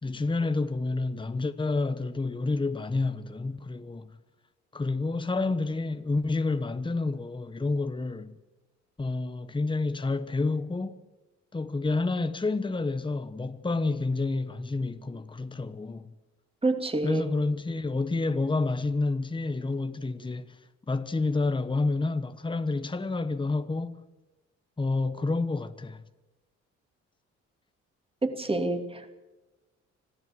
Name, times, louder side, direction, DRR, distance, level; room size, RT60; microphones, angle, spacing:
voice 1, 0.0-4.1 4.7-8.3 9.0-10.9 11.5-16.1 17.0-20.6 20.9-24.0 24.8-26.0, left 3 dB, 15° left, 1.2 m, -29 dB
voice 2, 16.6-17.2 28.2-29.1, right 2 dB, 20° right, 2.8 m, -28 dB
25.5 x 15.0 x 7.8 m
cardioid pair, 90°, 30 cm